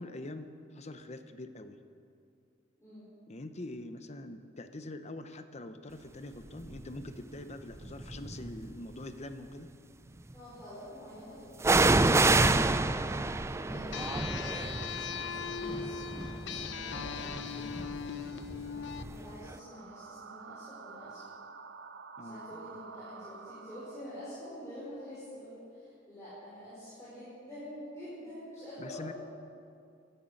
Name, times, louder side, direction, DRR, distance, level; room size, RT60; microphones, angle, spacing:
voice 1, 0.0-1.8 3.3-9.7 22.2-22.7 28.8-29.1, left 2 dB, 35° left, 9 dB, 0.8 m, -44 dB
sound 1, 6.7-7.0 7.8-8.7 11.6-19.3 19.5-19.6, right 2 dB, 15° right, 0.4 m, -29 dB
voice 2, 10.3-12.2 13.5-18.0 19.1-21.2 22.2-29.1, equal, 15° left, -11 dB, 4.9 m, -47 dB
sound 2, 13.9-19.0, left 7 dB, 65° left, 0.8 m, -39 dB
sound 3, 19.4-24.5, right 5 dB, 65° right, 0.8 m, -49 dB
17.5 x 11.5 x 6.6 m, 2.4 s
head